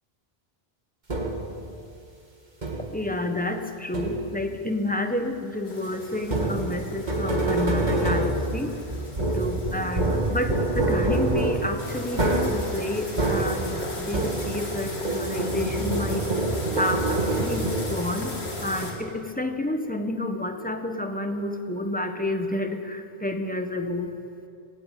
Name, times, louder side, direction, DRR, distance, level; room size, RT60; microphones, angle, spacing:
sound 1, 1.1-1.6 2.6-3.1 3.9-4.5 6.2-14.8 15.0-18.2, right 2 dB, 45° right, 2.4 m, -26 dB
voice 1, 2.9-8.8 9.3-16.3 16.7-24.1, left 1 dB, 10° left, 5 dB, 1.4 m, -30 dB
sound 2, 5.6-18.9, left 1 dB, 85° left, 3.4 m, -37 dB
18.0 x 17.5 x 8.5 m, 2.7 s
omnidirectional pair, 1.1 m